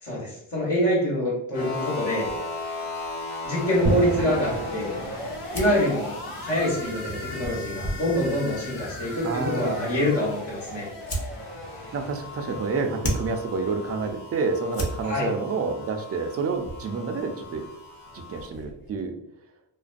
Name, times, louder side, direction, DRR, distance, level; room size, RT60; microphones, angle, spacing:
voice 1, 0.0-2.3 3.4-4.9 5.5-6.1 6.4-10.9 15.0-15.3, left 1 dB, 65° left, -5 dB, 1.2 m, -25 dB
sound 1, 1.5-18.5, left 2 dB, 80° left, 0.9 m, -37 dB
sound 2, 3.9-14.0, right 2 dB, 75° right, 0.7 m, -37 dB
sound 3, 5.4-19.1, right 1 dB, 45° left, 0.7 m, -39 dB
voice 2, 9.2-10.0 11.9-17.7 18.1-19.1, right 4 dB, 30° right, 5 dB, 0.4 m, -29 dB
2.5 x 2.1 x 2.4 m, 0.80 s
cardioid pair, 70°, 49 cm